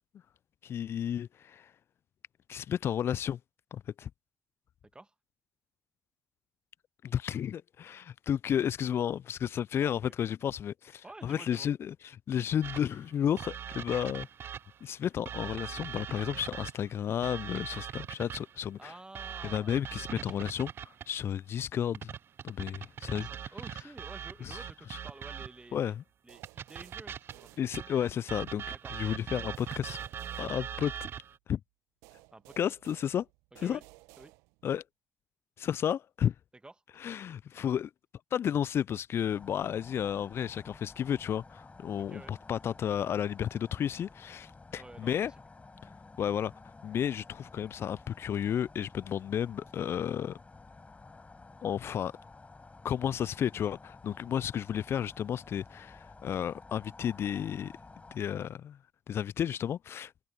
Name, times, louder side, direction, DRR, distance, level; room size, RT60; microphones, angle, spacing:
voice 1, 0.6-1.7 2.5-3.4 3.7-4.1 7.0-11.9 12.3-14.3 14.8-18.9 19.4-20.7 21.1-22.1 22.4-23.3 24.4-24.6 24.9-25.0 25.7-26.0 27.6-28.6 28.9-30.0 30.4-30.9 31.5-31.6 32.6-33.3 33.6-33.8 34.6-34.8 35.6-36.3 37.0-37.9 38.3-45.3 46.2-46.5 46.8-50.4 51.6-52.1 52.8-57.7 58.1-58.8 59.1-60.1, left 9 dB, 50° left, 0.5 m, -32 dB
voice 2, 11.0-11.7 18.8-20.4 23.0-25.9 26.2-27.9 28.7-28.9 32.3-32.7 33.6-33.8 34.2-34.4 36.6-36.7 42.0-42.3 44.7-45.2, right 2 dB, 20° right, 1.9 m, -51 dB
sound 1, 12.6-14.8 15.3-18.6 19.2-21.2 21.9-25.7 26.4-31.4, right 9 dB, 50° right, 0.5 m, -41 dB
sound 2, 26.3-28.2 29.5-31.3 32.0-34.8, right 24 dB, 70° right, 1.1 m, -57 dB
sound 3, 39.3-58.2, left 3 dB, 25° left, 6.4 m, -52 dB
figure-of-eight pair, 45°, 5 cm